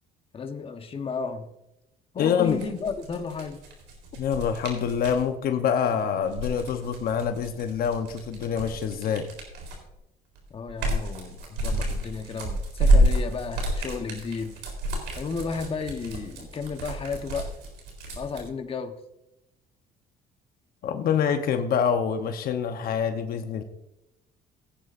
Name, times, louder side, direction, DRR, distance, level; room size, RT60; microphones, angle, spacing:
voice 1, 0.3-1.5 2.1-3.6 10.5-14.6 15.2-17.5 18.2-19.0, left 5 dB, 35° left, 1.1 m, -33 dB
voice 2, 2.2-2.6 4.1-9.3 20.8-23.6, left 7 dB, 60° left, 1.0 m, -26 dB
sound 1, 2.4-5.2 6.2-9.9 10.4-18.4, right 1 dB, 85° right, 3.8 m, -28 dB
18.0 x 9.7 x 2.6 m
cardioid pair, 110°, 17 cm